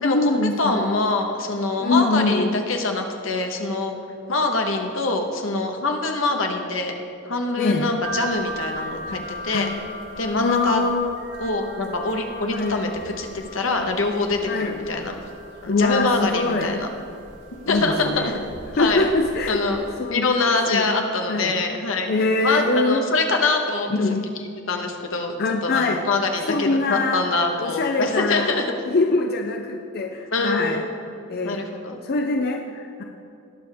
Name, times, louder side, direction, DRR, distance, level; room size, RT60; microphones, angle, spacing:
voice 1, 0.0-1.0 1.8-2.6 7.6-7.9 9.5-9.7 10.4-11.1 12.5-12.8 14.5-14.8 15.7-16.8 17.7-18.4 18.8-19.6 20.0-20.3 20.7-20.9 21.3-21.6 22.1-23.0 23.9-24.3 25.4-26.0 26.5-27.2 27.6-28.5 28.9-30.8 31.3-31.6 32.0-33.0, left 3 dB, 50° left, 4 dB, 0.5 m, -23 dB
voice 2, 0.6-3.9 4.3-6.9 7.2-9.7 10.2-10.8 11.4-15.1 15.6-16.9 17.7-18.3 18.8-19.0 19.5-22.1 22.4-23.9 24.4-28.6 30.3-30.8 31.4-32.0, left 3 dB, 80° left, 3 dB, 1.2 m, -24 dB
sound 1, 8.0-19.9, right 2 dB, 60° right, 2.3 m, -38 dB
19.0 x 6.7 x 3.5 m, 2.6 s
head